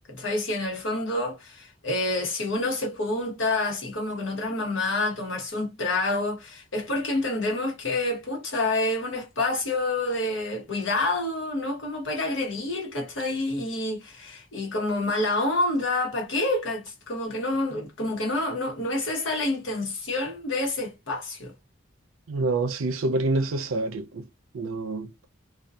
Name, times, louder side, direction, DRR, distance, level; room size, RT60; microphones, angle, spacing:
voice 1, 0.0-21.5, left 2 dB, 65° left, 1.0 m, -28 dB
voice 2, 22.3-24.2 24.5-25.3, right 2 dB, 80° right, 0.6 m, -27 dB
2.7 x 2.2 x 2.3 m
head